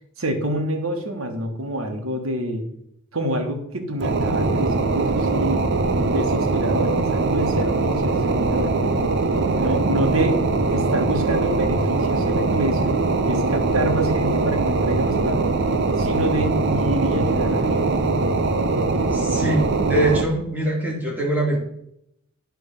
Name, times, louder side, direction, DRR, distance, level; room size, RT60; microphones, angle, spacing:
voice 1, 0.2-2.6 3.1-5.6 6.1-9.1 9.6-10.4 10.7-12.9 13.3-15.5 16.0-18.1, right 1 dB, 75° right, 4 dB, 1.5 m, -27 dB
sound 1, 4.0-20.2, right 3 dB, 55° right, 0.6 m, -21 dB
voice 2, 19.1-21.6, right 1 dB, 10° right, -3 dB, 2.1 m, -23 dB
9.3 x 3.5 x 6.6 m, 0.74 s
head